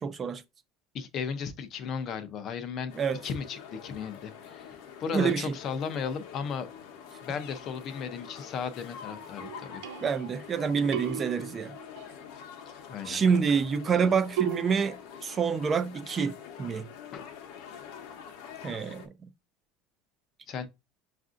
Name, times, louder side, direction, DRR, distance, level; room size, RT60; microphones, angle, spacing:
voice 1, 0.0-0.4 3.0-3.2 5.1-5.5 10.0-11.7 13.1-15.0 15.2-16.9 18.6-19.1, right 6 dB, 20° right, 0.4 m, -27 dB
voice 2, 0.9-2.9 3.2-6.7 7.2-9.8 12.9-13.2 17.1-17.2 20.5-20.7, left 6 dB, 30° left, 0.5 m, -35 dB
sound 1, 2.9-19.1, left 7 dB, 60° left, 0.8 m, -46 dB
sound 2, 9.4-10.5 10.9-12.1 14.4-14.7, right 8 dB, 90° right, 0.6 m, -35 dB
6.4 x 2.5 x 2.5 m
cardioid pair, 175°, 0 cm